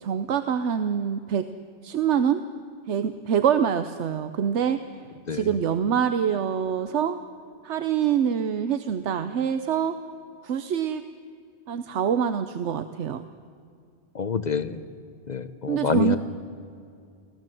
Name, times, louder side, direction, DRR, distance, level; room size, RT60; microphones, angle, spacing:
voice 1, 0.0-1.5 1.8-2.4 2.9-4.8 5.3-7.2 7.6-10.0 10.4-11.1 11.7-13.2 15.7-16.2, right 8 dB, 90° right, 10 dB, 1.1 m, -25 dB
voice 2, 14.1-14.8 15.3-16.2, left 5 dB, 45° left, 12 dB, 0.9 m, -26 dB
25.0 x 17.0 x 7.7 m, 2.4 s
omnidirectional pair, 1.1 m